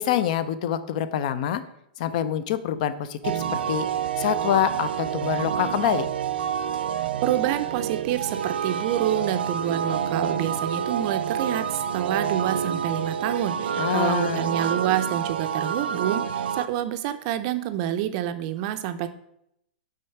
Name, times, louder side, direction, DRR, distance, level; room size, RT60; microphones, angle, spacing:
voice 1, 0.0-1.6 2.0-3.9 4.2-6.1 13.8-14.5, left 10 dB, 45° left, 13 dB, 0.5 m, -26 dB
sound 1, 3.2-16.7, right 8 dB, 85° right, 0.5 m, -28 dB
voice 2, 7.2-19.1, right 11 dB, 40° right, 10 dB, 0.5 m, -28 dB
6.4 x 3.5 x 5.8 m, 0.77 s
hypercardioid pair, 155°, 5 cm